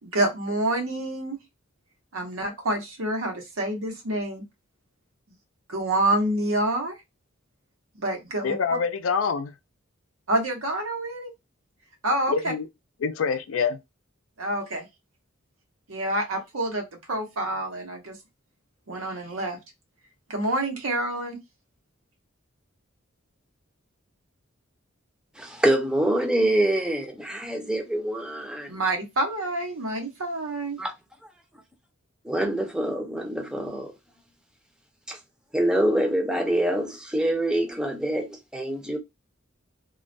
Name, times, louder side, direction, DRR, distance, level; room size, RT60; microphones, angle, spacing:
voice 1, 0.0-1.4 2.1-4.4 5.7-7.0 7.9-8.5 10.3-11.3 12.0-12.5 14.4-14.9 15.9-18.2 18.9-19.6 20.3-21.4 28.7-30.8, right 1 dB, 85° right, 0.9 m, -27 dB
voice 2, 8.4-9.5 12.3-12.7 13.0-13.8, left 5 dB, 75° left, 0.4 m, -25 dB
voice 3, 25.4-28.7 30.8-30.9 32.2-33.9 35.1-35.2 35.5-39.0, right 1 dB, 5° right, 0.5 m, -25 dB
2.3 x 2.1 x 2.5 m
head